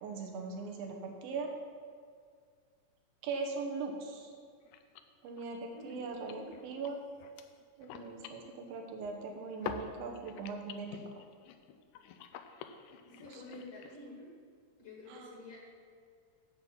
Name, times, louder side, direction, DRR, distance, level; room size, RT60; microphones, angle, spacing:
voice 1, 0.0-1.5 3.2-4.3 5.2-7.0 7.8-11.2 13.1-13.4 15.1-15.4, right 4 dB, 85° right, 2 dB, 2.9 m, -40 dB
sound 1, 4.0-4.1 4.3-4.4 4.6-9.3 9.6-14.0, left 7 dB, 80° left, 2.0 m, -48 dB
voice 2, 5.7-6.6 13.1-14.3 14.8-15.6, left 2 dB, 50° left, -3 dB, 2.4 m, -49 dB
10.5 x 5.7 x 7.7 m, 2.1 s
omnidirectional pair, 4.0 m